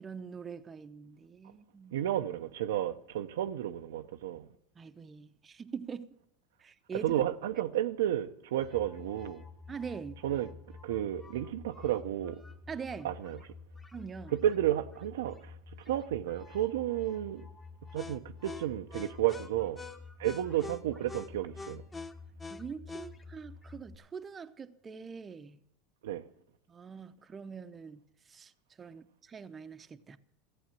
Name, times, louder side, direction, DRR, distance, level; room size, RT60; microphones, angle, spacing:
voice 1, 0.0-2.1 4.8-6.2 6.6-7.2 9.7-10.2 12.7-13.1 13.9-14.3 22.5-25.6 26.7-28.0 28.3-28.5 28.8-30.2, right 6 dB, 25° right, 0.7 m, -43 dB
voice 2, 1.9-4.5 7.0-9.4 10.2-10.5 10.8-12.4 13.0-13.4 14.3-15.5 15.9-17.5 17.9-19.8 20.2-21.8 26.0-26.2, right 12 dB, 85° right, 0.7 m, -32 dB
sound 1, 8.6-24.0, left 4 dB, 15° left, 1.2 m, -47 dB
15.0 x 8.1 x 7.5 m
supercardioid pair, 115°, 0 cm